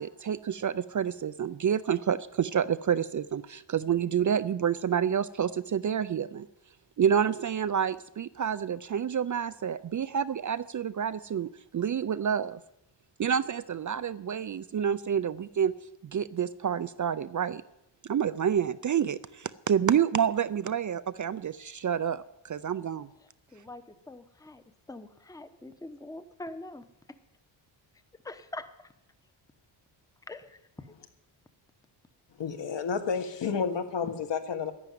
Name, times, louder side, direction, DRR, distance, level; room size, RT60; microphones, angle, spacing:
voice 1, 0.0-6.5 7.0-12.6 13.2-15.7 16.0-17.6 18.1-23.1, right 8 dB, 40° right, 0.5 m, -28 dB
voice 2, 23.5-24.6 24.9-26.9 28.2-28.7 30.3-30.6, left 2 dB, 5° left, 0.9 m, -43 dB
voice 3, 32.4-34.7, left 6 dB, 60° left, 1.8 m, -30 dB
11.5 x 11.0 x 9.3 m
wide cardioid pair, 135°, 48 cm